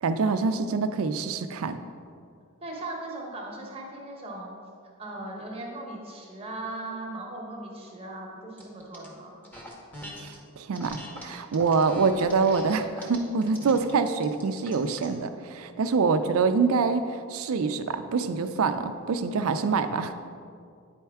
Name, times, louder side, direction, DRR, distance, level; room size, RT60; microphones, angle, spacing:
voice 1, 0.0-1.8 10.2-17.0 17.3-20.1, right 4 dB, 70° right, 9 dB, 0.4 m, -25 dB
voice 2, 2.6-4.5 5.0-9.4, right 2 dB, 25° right, -2 dB, 0.9 m, -38 dB
sound 1, 8.6-9.1 9.4-10.4 10.7-15.1, equal, 10° left, 0.8 m, -43 dB
9.2 x 4.4 x 3.5 m, 2.3 s
head